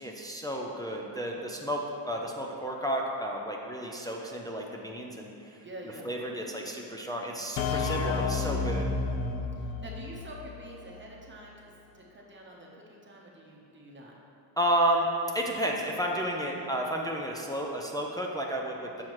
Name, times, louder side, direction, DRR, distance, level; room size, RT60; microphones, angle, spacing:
voice 1, 0.0-5.6 6.0-8.9 14.6-15.1 15.3-19.0, right 1 dB, 10° left, -1 dB, 0.3 m, -32 dB
voice 2, 5.6-6.1 6.4-7.9 9.5-14.1 16.4-16.7 18.9-19.0, right 1 dB, 25° right, -3 dB, 0.9 m, -48 dB
sound 1, 7.6-11.1, left 4 dB, 80° left, 0.6 m, -31 dB
7.2 x 6.3 x 3.0 m, 2.7 s
cardioid pair, 145°, 47 cm